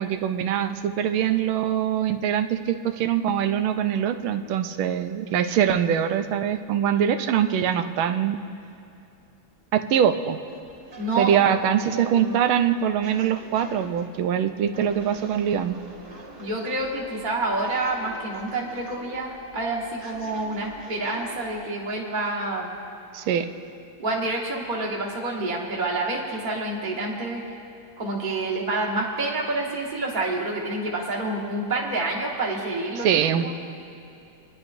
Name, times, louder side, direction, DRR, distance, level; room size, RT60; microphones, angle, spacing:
voice 1, 0.0-8.4 9.7-10.4 11.2-15.8 23.1-23.5 33.0-33.5, right 9 dB, 85° right, 8 dB, 1.5 m, -23 dB
sound 1, 10.5-21.6, right 2 dB, 55° right, 3.1 m, -46 dB
voice 2, 11.0-11.4 11.9-12.3 16.4-22.7 24.0-27.4 28.0-33.1 33.4-33.5, right 2 dB, 25° right, -2 dB, 1.3 m, -28 dB
28.0 x 10.5 x 2.6 m, 2.6 s
omnidirectional pair, 2.2 m